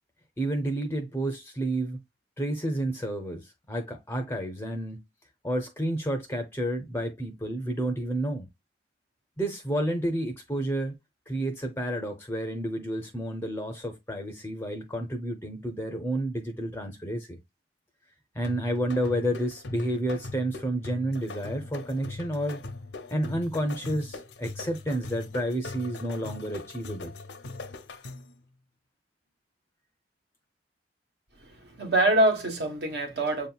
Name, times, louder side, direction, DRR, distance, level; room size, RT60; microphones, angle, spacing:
voice 1, 0.4-2.0 2.4-5.0 5.4-8.5 9.4-11.0 11.3-17.4 18.3-22.6 23.1-27.1, right 1 dB, 15° left, 0.5 m, -30 dB
sound 1, 18.4-28.4, left 3 dB, 85° left, 0.7 m, -41 dB
voice 2, 31.4-33.5, right 1 dB, 65° right, 1.2 m, -25 dB
7.1 x 2.8 x 2.2 m
head